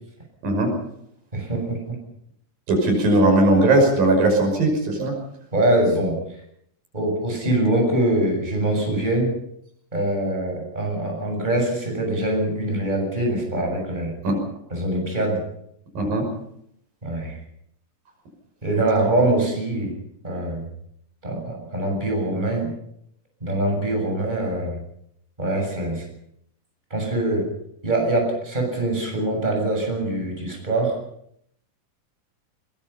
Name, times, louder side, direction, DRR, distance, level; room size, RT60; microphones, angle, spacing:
voice 1, 0.4-0.7 2.7-5.1 14.2-14.4 16.0-16.3, right 2 dB, 75° right, 2 dB, 7.7 m, -18 dB
voice 2, 1.3-2.0 5.5-6.2 6.9-9.3 9.9-14.1 14.7-15.4 17.0-17.3 18.6-19.9 20.2-20.7 21.2-22.7 23.4-24.8 25.4-26.1 26.9-27.5 27.8-30.9, right 1 dB, 10° right, 1 dB, 7.1 m, -23 dB
22.5 x 21.5 x 5.7 m, 0.71 s
omnidirectional pair, 4.1 m